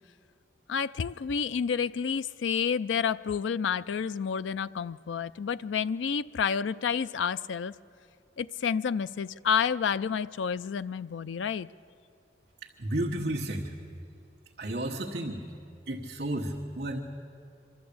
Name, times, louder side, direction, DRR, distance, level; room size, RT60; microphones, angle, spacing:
voice 1, 0.7-7.7 8.4-11.7, left 6 dB, 80° left, 0.4 m, -29 dB
voice 2, 12.6-13.7 14.6-15.4 15.9-17.0, right 1 dB, 55° right, 1.3 m, -32 dB
24.0 x 13.5 x 8.6 m
head